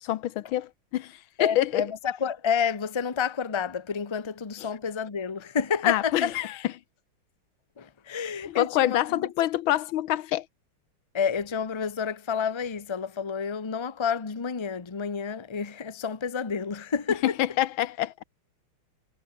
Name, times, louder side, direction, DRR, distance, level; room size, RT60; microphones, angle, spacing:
voice 1, 0.0-1.8 5.8-6.5 8.5-10.4 17.2-18.1, left 13 dB, 80° left, 1.6 m, -26 dB
voice 2, 1.4-6.3 7.8-9.3 11.1-17.4, left 6 dB, 20° left, 0.8 m, -29 dB
omnidirectional pair, 2.2 m